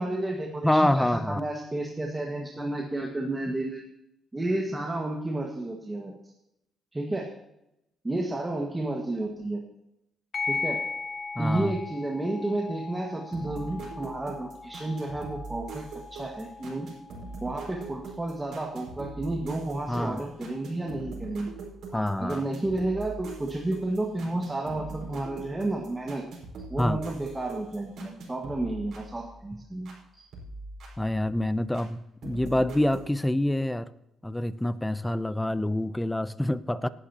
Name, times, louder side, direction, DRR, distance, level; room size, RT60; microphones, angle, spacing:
voice 1, 0.0-3.8 4.3-6.1 6.9-7.3 8.0-9.6 10.4-10.8 11.4-16.9 17.4-21.5 22.2-26.2 26.7-30.2, right 2 dB, 15° right, -1 dB, 1.8 m, -31 dB
voice 2, 0.6-1.4 11.4-11.8 19.9-20.2 21.9-22.4 26.8-27.0 31.0-33.9 34.2-36.9, left 1 dB, 10° left, 14 dB, 0.6 m, -26 dB
sound 1, 10.3-19.3, left 4 dB, 50° left, 1.2 m, -38 dB
sound 2, 13.3-30.0 30.3-31.9 32.2-33.1, right 3 dB, 70° right, 5.0 m, -42 dB
18.0 x 11.5 x 3.0 m, 0.84 s
cardioid pair, 90°, 0 cm